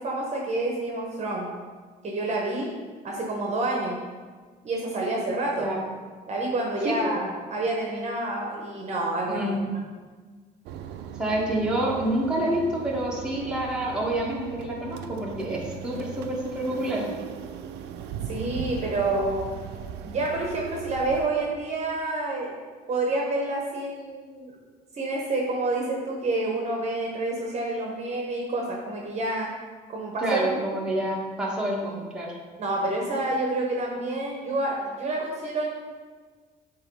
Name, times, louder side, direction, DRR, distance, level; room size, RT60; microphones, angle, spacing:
voice 1, 0.0-1.5 2.0-2.7 3.0-4.0 4.6-5.7 6.3-9.5 18.3-19.4 20.0-22.5 22.9-24.5 24.9-29.5 29.9-30.5 32.6-35.7, right 2 dB, 40° right, -1 dB, 1.1 m, -28 dB
voice 2, 9.2-9.6 11.1-17.0 30.2-32.3, right 1 dB, 5° right, -5 dB, 1.5 m, -28 dB
sound 1, 10.7-21.3, right 8 dB, 85° right, 0.5 m, -38 dB
7.6 x 3.0 x 4.7 m, 1.5 s
cardioid pair, 110°, 17 cm